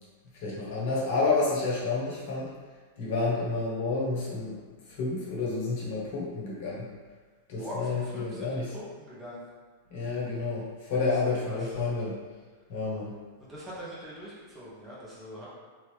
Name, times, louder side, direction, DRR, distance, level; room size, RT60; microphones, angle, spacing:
voice 1, 0.4-2.5 3.0-4.6 5.0-6.8 7.5-8.7 9.9-12.1 12.7-13.1, left 3 dB, 60° left, -5 dB, 1.3 m, -29 dB
voice 2, 7.6-9.4 11.2-11.7 13.4-15.5, equal, 20° right, -7 dB, 1.4 m, -42 dB
3.5 x 2.9 x 3.4 m, 1.5 s
hypercardioid pair, 100°, 0 cm